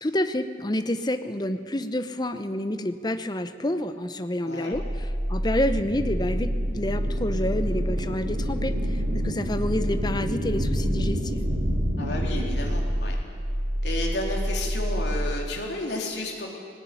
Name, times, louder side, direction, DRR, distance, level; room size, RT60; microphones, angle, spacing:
voice 1, 0.0-11.4, left 1 dB, 25° left, 10 dB, 0.9 m, -28 dB
voice 2, 4.4-4.8 12.0-13.2 13.8-16.5, left 2 dB, 70° left, 0 dB, 3.9 m, -32 dB
sound 1, 4.7-15.3, equal, 50° right, 1.9 m, -28 dB
sound 2, 5.5-12.8, equal, 75° right, 3.5 m, -31 dB
18.5 x 18.0 x 10.0 m, 2.4 s
head